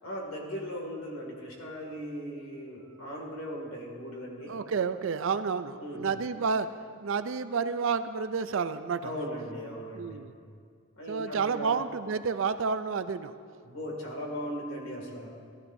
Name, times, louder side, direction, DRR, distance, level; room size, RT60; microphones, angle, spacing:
voice 1, 0.0-4.6 5.8-6.1 9.0-10.2 11.0-11.7 13.6-15.3, equal, 75° left, -1 dB, 2.3 m, -38 dB
voice 2, 4.5-6.7 7.0-9.2 10.0-10.3 11.1-13.3, right 5 dB, 60° right, 12 dB, 0.4 m, -30 dB
15.5 x 12.5 x 2.7 m, 2.2 s
head